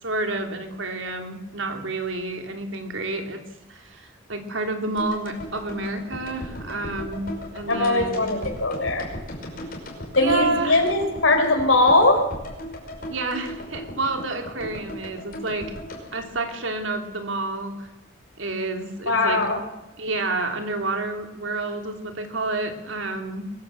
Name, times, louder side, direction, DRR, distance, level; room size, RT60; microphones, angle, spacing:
voice 1, 0.0-3.4 3.7-8.3 10.2-10.8 13.1-15.7 16.1-17.9 18.4-19.4 20.0-23.5, right 2 dB, 80° right, 5 dB, 3.1 m, -29 dB
sound 1, 5.0-17.2 17.4-17.5, equal, 45° left, 5.4 m, -37 dB
voice 2, 7.7-9.1 10.1-12.2 19.1-19.6, left 2 dB, 90° left, 4 dB, 4.6 m, -20 dB
22.5 x 15.0 x 7.8 m, 0.99 s
head